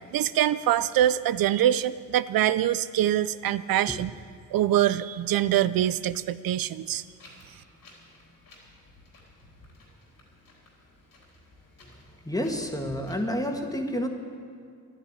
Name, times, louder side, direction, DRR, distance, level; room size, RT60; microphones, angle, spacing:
voice 1, 0.1-4.1 4.5-7.0, right 12 dB, 80° right, 15 dB, 0.5 m, -24 dB
Wind, 6.8-13.2, left 1 dB, 75° left, 3.8 m, -53 dB
voice 2, 12.2-14.1, equal, 10° left, 3 dB, 1.8 m, -29 dB
12.0 x 10.5 x 9.8 m, 2.2 s
cardioid pair, 65°, 34 cm